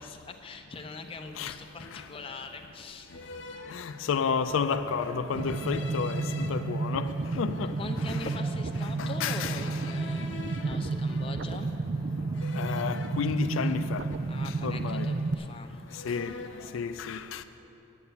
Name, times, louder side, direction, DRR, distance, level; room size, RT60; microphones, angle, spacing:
voice 1, 0.0-3.1 7.8-11.7 14.3-15.9, left 3 dB, 25° left, 0.6 m, -42 dB
sound 1, 0.7-0.9 1.7-2.3 3.1-4.5 5.3-6.5 7.0-8.6 9.4-11.8 12.3-14.6 14.9-15.6 15.9-16.8, left 3 dB, 70° left, 0.8 m, -46 dB
voice 2, 3.7-7.1 7.4-7.7 9.0-9.6 12.6-14.0 14.6-15.1 16.1-16.3 16.7-17.4, left 6 dB, 85° left, 0.4 m, -31 dB
sound 2, 4.0-12.4, right 1 dB, 20° right, 0.7 m, -49 dB
sound 3, 5.3-15.3, right 3 dB, 55° right, 0.4 m, -31 dB
9.5 x 6.8 x 8.6 m
head